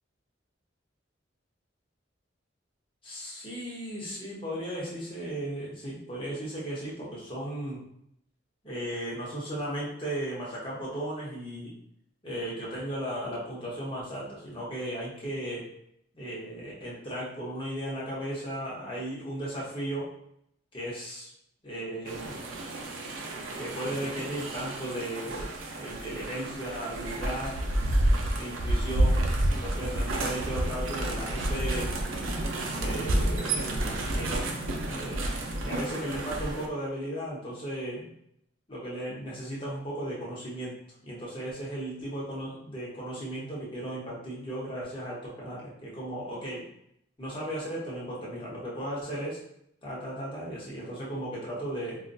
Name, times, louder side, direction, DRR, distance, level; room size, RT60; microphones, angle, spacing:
voice 1, 3.0-7.8 8.6-11.7 12.2-15.6 16.1-20.1 20.7-21.3 21.6-22.4 23.6-27.6 28.4-31.9 32.8-33.7 34.1-35.2 35.6-38.1 38.7-40.7 41.0-46.6 47.2-49.4 49.8-52.0, right 1 dB, 25° left, -6 dB, 1.0 m, -36 dB
sound 1, 22.1-36.7, right 1 dB, 85° right, 0.5 m, -30 dB
2.4 x 2.1 x 3.9 m, 0.73 s
head